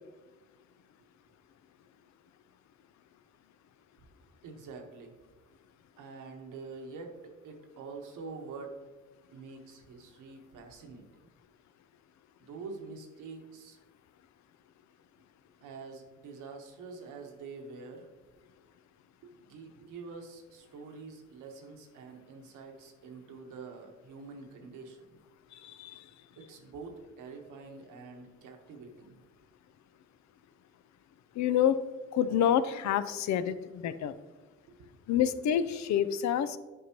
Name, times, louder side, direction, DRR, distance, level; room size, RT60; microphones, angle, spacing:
voice 1, 4.4-5.5 6.0-8.8 9.3-11.1 12.4-13.8 15.6-18.1 19.2-25.1 26.4-29.2 34.7-34.9, right 4 dB, 85° right, 3 dB, 1.2 m, -46 dB
voice 2, 25.5-26.0 31.4-31.8 32.1-34.2 35.1-36.6, left 9 dB, 65° left, 13 dB, 0.5 m, -28 dB
9.2 x 5.4 x 2.9 m, 1.3 s
cardioid pair, 90°, 30 cm